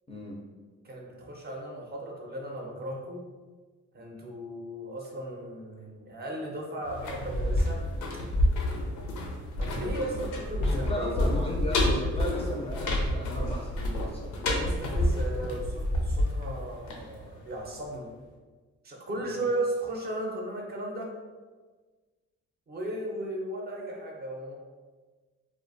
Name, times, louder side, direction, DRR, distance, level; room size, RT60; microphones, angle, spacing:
voice 1, 0.1-0.4 10.6-14.7 19.2-19.4, equal, 20° left, -3 dB, 0.4 m, -36 dB
voice 2, 0.8-3.2 3.9-7.8 9.6-11.1 14.5-18.1 18.8-21.1 22.7-24.6, right 1 dB, 35° right, -1 dB, 0.5 m, -36 dB
sound 1, 6.8-17.6 17.9-18.0, left 1 dB, 80° left, 0.5 m, -29 dB
2.3 x 2.2 x 2.5 m, 1.4 s
cardioid pair, 90°, 30 cm